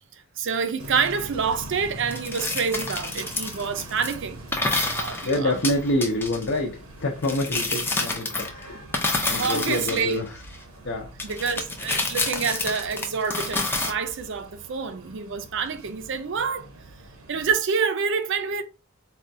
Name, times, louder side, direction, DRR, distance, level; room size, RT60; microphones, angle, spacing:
voice 1, 0.0-4.4 4.9-5.6 9.2-10.2 11.2-16.7 17.3-18.6, right 5 dB, 60° right, 0.5 m, -27 dB
sound 1, 0.8-17.5, right 1 dB, 90° right, 0.9 m, -44 dB
sound 2, 2.1-4.1 4.5-6.5 7.2-8.6 8.9-10.6 11.2-13.9, left 2 dB, 10° left, 0.4 m, -28 dB
voice 2, 5.2-10.3 10.8-11.1, left 1 dB, 55° left, 0.5 m, -27 dB
4.1 x 2.3 x 2.6 m
head